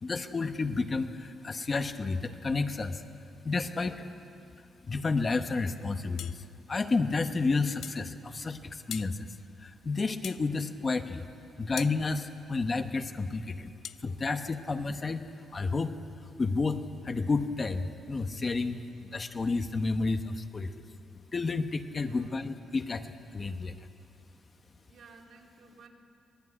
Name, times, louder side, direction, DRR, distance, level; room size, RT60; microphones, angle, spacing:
voice 1, 0.0-3.0 3.4-4.1 4.9-9.2 9.6-11.2 11.6-13.7 14.0-15.2 15.5-15.9 16.4-20.7 21.3-23.7, left 3 dB, 25° left, 7 dB, 1.0 m, -31 dB
sound 1, 6.2-6.4 7.8-8.0 8.9-9.1 10.2-10.5 11.8-12.0 13.8-14.0, left 9 dB, 60° left, 0.6 m, -40 dB
voice 2, 21.9-22.5 24.8-25.9, right 4 dB, 65° right, -1 dB, 4.0 m, -55 dB
25.5 x 20.0 x 9.7 m, 2.5 s
cardioid pair, 165°, 0 cm